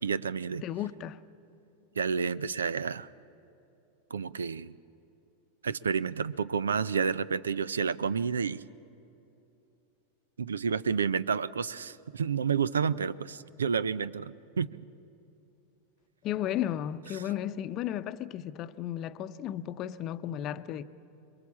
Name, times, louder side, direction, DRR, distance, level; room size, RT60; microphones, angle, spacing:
voice 1, 0.0-0.6 2.0-3.1 4.1-4.7 5.6-8.6 10.4-14.7, right 6 dB, 80° right, 0.5 m, -30 dB
voice 2, 0.6-1.2 16.2-20.8, left 11 dB, 40° left, 0.8 m, -34 dB
26.5 x 22.0 x 7.3 m
figure-of-eight pair, 90°, 0 cm